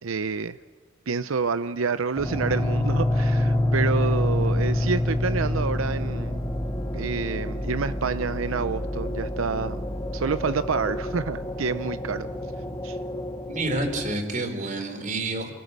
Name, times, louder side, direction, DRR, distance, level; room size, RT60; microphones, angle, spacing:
voice 1, 0.0-0.6 1.1-6.5 6.9-9.8 10.1-12.3 12.8-13.0, right 5 dB, 90° right, 12 dB, 0.6 m, -28 dB
sound 1, 2.2-14.1, left 1 dB, 20° left, 1.6 m, -27 dB
voice 2, 13.5-15.5, right 2 dB, 40° right, 6 dB, 3.8 m, -28 dB
28.0 x 18.0 x 8.1 m, 1.4 s
head